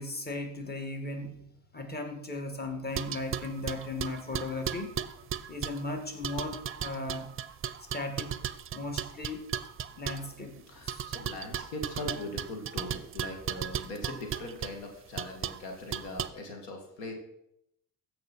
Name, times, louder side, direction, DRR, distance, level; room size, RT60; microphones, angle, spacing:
voice 1, 0.0-1.4 1.7-4.9 5.5-7.3 7.9-8.3 8.7-9.4 10.0-11.1, left 2 dB, 20° left, 5 dB, 1.9 m, -37 dB
sound 1, 3.0-5.9 6.2-10.3 10.9-14.7 15.2-15.6 15.9-16.3, right 9 dB, 30° right, 0.6 m, -36 dB
voice 2, 9.9-10.3 10.7-17.1, left 2 dB, 80° left, 3 dB, 2.0 m, -41 dB
14.5 x 5.7 x 4.3 m, 0.77 s
hypercardioid pair, 60°, 45 cm